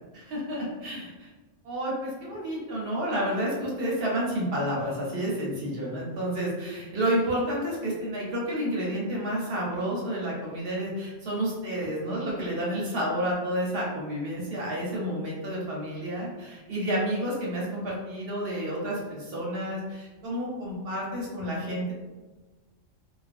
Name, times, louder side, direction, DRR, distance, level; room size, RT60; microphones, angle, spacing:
voice 1, 0.1-1.3 1.6-21.9, equal, 55° right, -4 dB, 0.9 m, -30 dB
2.4 x 2.2 x 2.5 m, 1.2 s
omnidirectional pair, 1.3 m